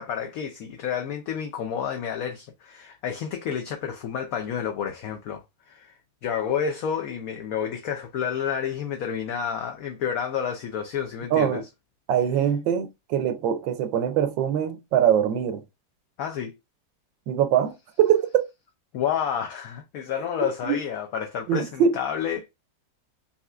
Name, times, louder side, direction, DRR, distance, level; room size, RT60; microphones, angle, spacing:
voice 1, 0.0-11.7 16.2-16.6 18.9-22.5, left 8 dB, 70° left, 0.9 m, -30 dB
voice 2, 11.3-11.6 12.1-15.6 17.3-18.5 20.6-20.8 21.5-21.9, right 9 dB, 90° right, 1.4 m, -23 dB
5.6 x 2.9 x 2.3 m
omnidirectional pair, 2.0 m